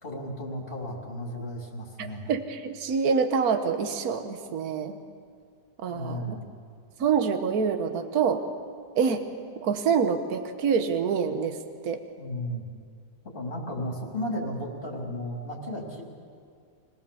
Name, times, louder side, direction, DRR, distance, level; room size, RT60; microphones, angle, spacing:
voice 1, 0.0-2.3 5.9-6.5 12.2-12.6 13.3-16.0, equal, 30° left, -2 dB, 3.7 m, -34 dB
voice 2, 2.0-5.0 5.8-6.2 7.0-8.4 8.9-9.2 9.6-11.6 11.8-12.0, right 6 dB, 60° right, 7 dB, 1.6 m, -26 dB
25.5 x 18.0 x 7.1 m, 2.2 s
omnidirectional pair, 1.8 m